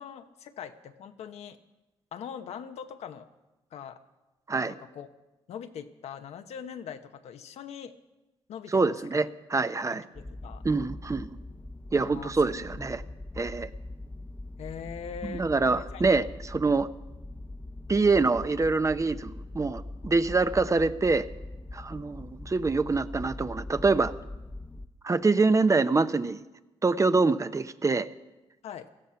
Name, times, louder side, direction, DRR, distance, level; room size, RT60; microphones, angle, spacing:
voice 1, 0.0-1.6 2.1-3.3 3.7-4.0 4.6-5.1 5.5-7.9 8.5-8.8 9.1-9.2 9.9-10.6 12.0-12.8 14.6-15.4 15.8-16.0 28.6-28.9, left 8 dB, 80° left, 8 dB, 0.9 m, -42 dB
voice 2, 8.7-10.0 10.6-11.4 11.9-13.0 13.4-13.7 15.3-16.9 17.9-21.3 21.7-24.1 25.0-26.4 26.8-28.1, right 3 dB, 30° right, 12 dB, 0.7 m, -25 dB
sound 1, 10.1-24.9, left 2 dB, 10° left, 0.8 m, -42 dB
17.5 x 13.5 x 5.8 m, 1.1 s
cardioid pair, 65°, 11 cm